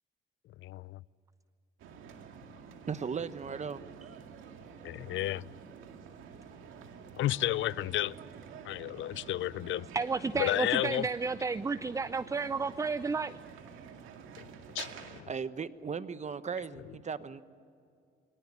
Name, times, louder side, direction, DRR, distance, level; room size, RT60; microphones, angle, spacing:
voice 1, 0.6-1.0 4.8-5.4 7.2-8.2 8.6-9.9 10.4-11.1 14.4-14.5 14.7-14.9 15.2-15.3, left 14 dB, 75° left, 0.5 m, -32 dB
sound 1, 1.8-15.2, right 6 dB, 90° right, 2.1 m, -49 dB
voice 2, 2.9-4.1 15.3-17.4, right 6 dB, 35° right, 1.1 m, -37 dB
voice 3, 9.9-13.3, right 4 dB, 15° right, 0.5 m, -32 dB
23.5 x 18.5 x 9.8 m
cardioid pair, 90°, 20 cm